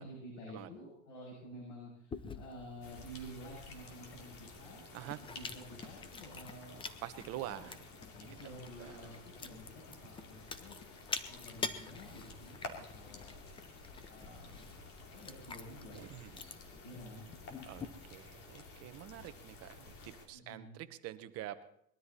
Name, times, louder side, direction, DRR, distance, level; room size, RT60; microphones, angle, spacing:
voice 1, 0.0-4.8 5.2-6.9 7.5-7.7 8.0-13.5 14.1-16.0 16.8-17.6 20.3-20.8, equal, 65° left, -3 dB, 7.2 m, -51 dB
Chewing mastication, 2.1-17.8, left 5 dB, 15° left, 0.7 m, -48 dB
sound 1, 2.8-20.3, left 3 dB, 35° left, 2.9 m, -52 dB
voice 2, 7.0-7.8 8.8-9.0 15.9-16.3 17.6-21.6, right 13 dB, 40° right, 11 dB, 1.1 m, -46 dB
21.0 x 13.0 x 4.2 m, 0.73 s
supercardioid pair, 145°, 37 cm